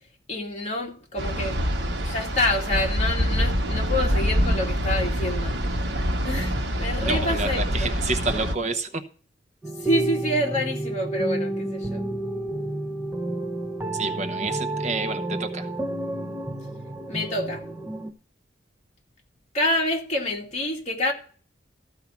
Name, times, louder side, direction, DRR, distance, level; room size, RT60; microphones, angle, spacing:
voice 1, 0.3-1.7 2.0-5.5 6.2-7.9 9.8-12.0 17.1-17.6 19.5-21.1, left 1 dB, 40° left, 2.5 m, -27 dB
sound 1, 1.2-8.5, equal, 65° right, 1.2 m, -25 dB
voice 2, 7.0-9.0 13.9-15.7, right 3 dB, 40° right, 0.9 m, -29 dB
sound 2, 9.6-18.1, right 2 dB, 10° right, 0.8 m, -30 dB
14.0 x 4.8 x 7.1 m
head